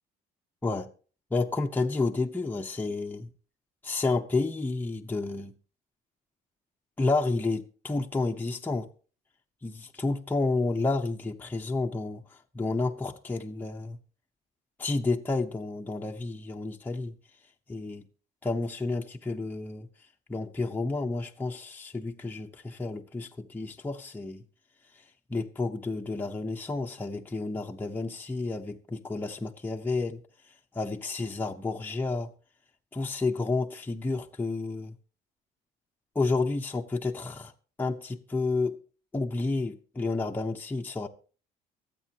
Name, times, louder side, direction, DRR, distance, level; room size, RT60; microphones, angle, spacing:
voice 1, 1.3-3.3 3.8-5.5 7.0-8.9 9.6-14.0 14.8-17.2 17.7-18.1 18.4-19.9 20.3-24.4 25.3-30.2 30.7-32.3 32.9-34.9 36.1-37.5 37.8-38.8 39.1-41.1, left 3 dB, 10° left, 0.9 m, -30 dB
23.5 x 8.5 x 2.9 m
cardioid pair, 115°, 16 cm